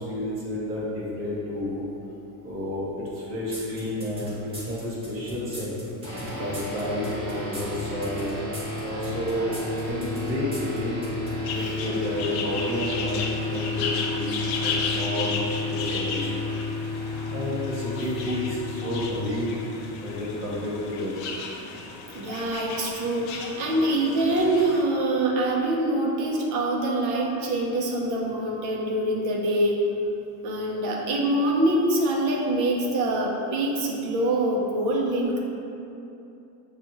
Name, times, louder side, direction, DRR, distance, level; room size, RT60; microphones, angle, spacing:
voice 1, 0.0-1.8 2.4-5.7 6.3-8.3 8.8-11.1 11.5-16.6 16.8-19.5 20.0-21.1, left 1 dB, 30° right, -8 dB, 1.0 m, -31 dB
sound 1, 3.5-11.4, equal, 15° right, 0.6 m, -39 dB
sound 2, 6.0-20.8, left 2 dB, 5° left, 1.4 m, -32 dB
sound 3, 11.4-24.8, left 4 dB, 70° left, 0.6 m, -34 dB
voice 2, 22.1-29.8 30.4-35.4, right 1 dB, 45° right, -1 dB, 0.7 m, -25 dB
6.7 x 2.4 x 3.0 m, 2.8 s
cardioid pair, 170°, 43 cm